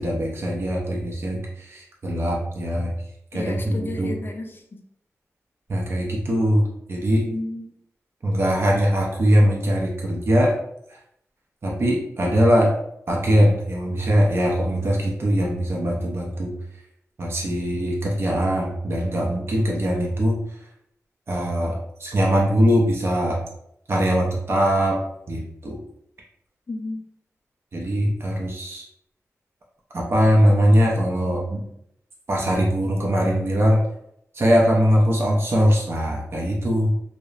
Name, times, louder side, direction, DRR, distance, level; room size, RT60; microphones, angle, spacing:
voice 1, 0.0-2.9 3.3-4.2 5.7-7.3 8.2-10.6 11.6-12.7 13.1-16.5 17.2-20.4 21.3-23.4 23.9-25.0 25.3-25.8 27.7-28.8 29.9-31.6 32.3-33.8 34.3-36.9, equal, 50° right, -2 dB, 0.6 m, -21 dB
voice 2, 3.3-4.6 7.2-7.7 26.7-27.1, left 2 dB, 40° left, 4 dB, 0.4 m, -32 dB
2.8 x 2.0 x 2.4 m, 0.73 s
wide cardioid pair, 75°, 5 cm